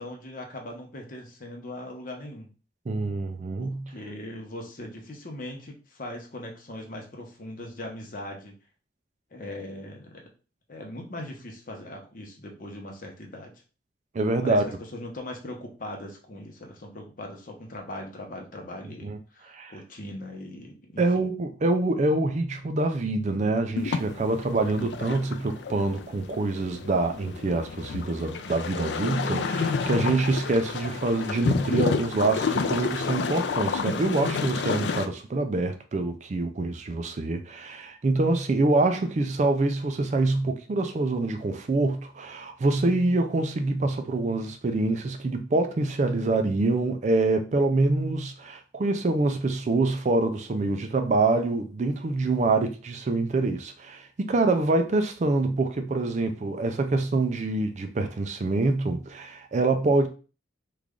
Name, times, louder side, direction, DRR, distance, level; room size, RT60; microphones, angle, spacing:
voice 1, 0.0-2.5 3.6-8.5 9.3-10.3 10.7-13.5 14.4-21.3, left 1 dB, 45° left, 0.8 m, -40 dB
voice 2, 2.9-3.9 14.1-14.6 19.0-19.2 19.5-19.7 21.0-60.1, right 2 dB, 40° right, 0.4 m, -25 dB
sound 1, 23.8-35.1, left 5 dB, 65° left, 0.4 m, -30 dB
3.2 x 2.4 x 3.6 m
head